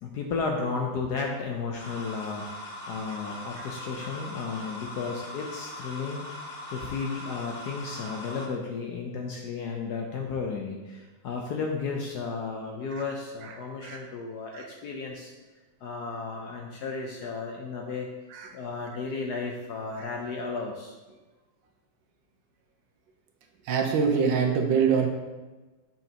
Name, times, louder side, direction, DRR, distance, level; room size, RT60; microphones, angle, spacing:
voice 1, 0.0-6.2 6.7-15.3 15.8-18.1 18.5-20.9, left 4 dB, 70° left, 1 dB, 1.0 m, -33 dB
sound 1, 1.8-8.4, left 1 dB, 40° left, 1.4 m, -40 dB
voice 2, 23.7-25.1, right 6 dB, 70° right, 3 dB, 1.3 m, -24 dB
7.3 x 5.5 x 2.8 m, 1.2 s
omnidirectional pair, 2.2 m